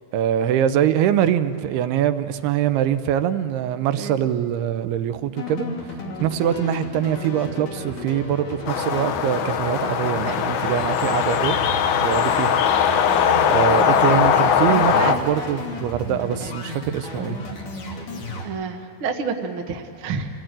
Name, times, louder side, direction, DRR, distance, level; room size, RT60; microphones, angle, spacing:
voice 1, 0.1-5.7 6.2-11.6 12.0-12.6 13.5-17.4, right 10 dB, 80° right, 10 dB, 2.7 m, -23 dB
sound 1, 5.4-18.4, left 2 dB, 55° left, 4.2 m, -34 dB
sound 2, 8.7-15.2, left 7 dB, 75° left, 1.8 m, -20 dB
voice 2, 14.7-15.1 18.4-20.3, right 5 dB, 60° right, 3 dB, 1.4 m, -29 dB
25.5 x 17.5 x 8.9 m, 2.6 s
omnidirectional pair, 4.7 m